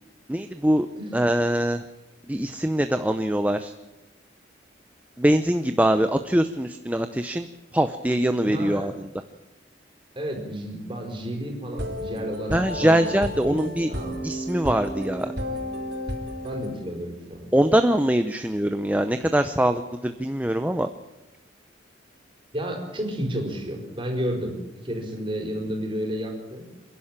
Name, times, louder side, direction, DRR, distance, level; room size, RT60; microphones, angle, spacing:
voice 1, 0.3-0.9 1.1-1.8 2.3-3.7 5.2-8.9 12.5-13.9 14.2-15.3 17.5-20.9, right 1 dB, 10° right, 8 dB, 0.6 m, -23 dB
voice 2, 8.4-8.9 10.1-14.2 15.3-15.7 16.4-17.5 22.5-24.6 24.8-26.6, equal, 25° right, 2 dB, 4.6 m, -32 dB
sound 1, 11.7-16.8, equal, 55° right, 3.7 m, -32 dB
28.0 x 11.0 x 8.9 m, 1.1 s
head